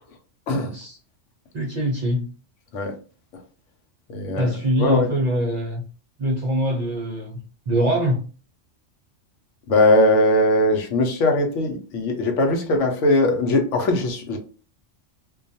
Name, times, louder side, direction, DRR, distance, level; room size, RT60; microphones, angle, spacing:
voice 1, 1.5-2.3 4.4-5.8 6.2-7.4 7.7-8.2, equal, 55° right, 0.4 m, -23 dB
voice 2, 4.1-4.5 4.8-5.1 9.7-14.4, left 1 dB, 75° left, 0.9 m, -20 dB
2.3 x 2.2 x 2.6 m
omnidirectional pair, 1.3 m